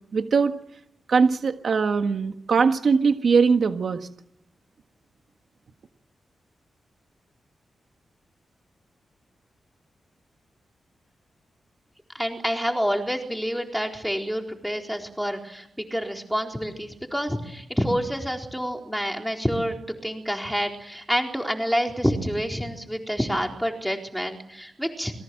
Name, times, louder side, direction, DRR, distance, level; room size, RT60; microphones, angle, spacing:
voice 1, 0.1-0.5 1.1-4.1, right 5 dB, 55° right, 6 dB, 1.6 m, -21 dB
voice 2, 12.1-15.7 15.9-19.8 20.0-25.1, equal, ahead, 2 dB, 4.1 m, -28 dB
29.0 x 23.0 x 7.8 m, 0.79 s
wide cardioid pair, 155°, 0 cm